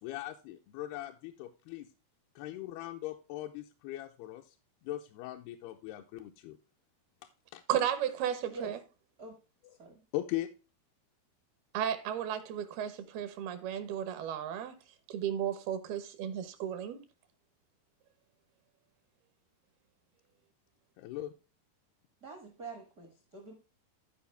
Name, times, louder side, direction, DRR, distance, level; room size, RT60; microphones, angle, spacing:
voice 1, 0.0-1.9 2.4-4.6 4.8-6.6 7.5-7.6 9.6-9.8 10.1-10.5 21.0-21.3, left 14 dB, 85° left, 2.6 m, -40 dB
voice 2, 7.7-8.8 11.7-14.8 15.1-17.0, right 9 dB, 75° right, 2.9 m, -34 dB
voice 3, 22.2-23.5, right 3 dB, 55° right, 0.9 m, -45 dB
14.0 x 4.9 x 3.3 m
omnidirectional pair, 4.6 m